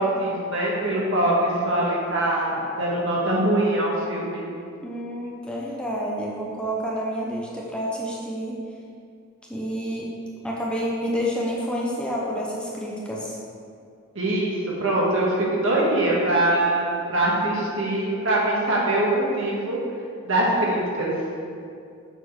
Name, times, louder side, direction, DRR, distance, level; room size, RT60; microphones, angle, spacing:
voice 1, 0.0-4.4 14.1-14.5 14.8-15.3 15.6-19.8 20.2-21.1, right 1 dB, 60° right, -4 dB, 1.7 m, -23 dB
voice 2, 4.8-8.6 9.5-10.1 10.4-13.4, equal, 5° left, -5 dB, 0.8 m, -29 dB
7.0 x 4.4 x 6.2 m, 2.4 s
head